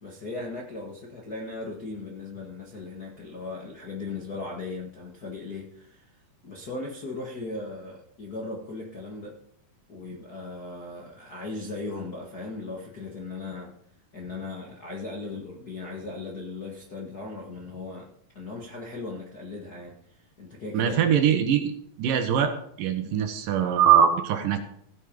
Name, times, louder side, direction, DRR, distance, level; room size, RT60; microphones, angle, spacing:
voice 1, 0.0-6.1 6.4-9.3 9.9-13.7 14.1-18.1 18.3-21.0 23.0-23.3, left 3 dB, 45° left, -3 dB, 1.2 m, -37 dB
voice 2, 20.7-21.7 22.0-22.5 22.8-24.6, right 9 dB, 70° right, 7 dB, 2.7 m, -22 dB
16.0 x 8.5 x 5.2 m, 0.71 s
omnidirectional pair, 4.2 m